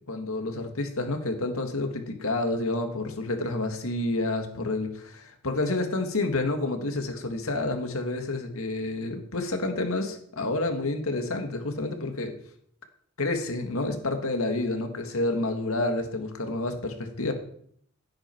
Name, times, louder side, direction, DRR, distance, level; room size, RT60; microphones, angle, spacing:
voice 1, 0.1-12.3 13.2-17.3, left 2 dB, 85° left, 5 dB, 2.0 m, -29 dB
16.0 x 8.8 x 4.6 m, 0.64 s
head